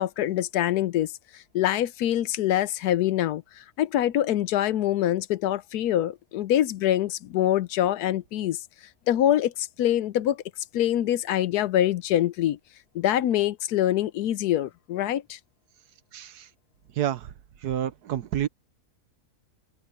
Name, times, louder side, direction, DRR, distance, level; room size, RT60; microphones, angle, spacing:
voice 1, 0.0-8.6 9.1-10.4 10.7-12.6 12.9-15.4, left 12 dB, 80° left, 1.2 m, -25 dB
voice 2, 16.1-16.5 17.0-17.3 17.6-18.5, right 11 dB, 80° right, 1.4 m, -29 dB
omnidirectional pair, 1.7 m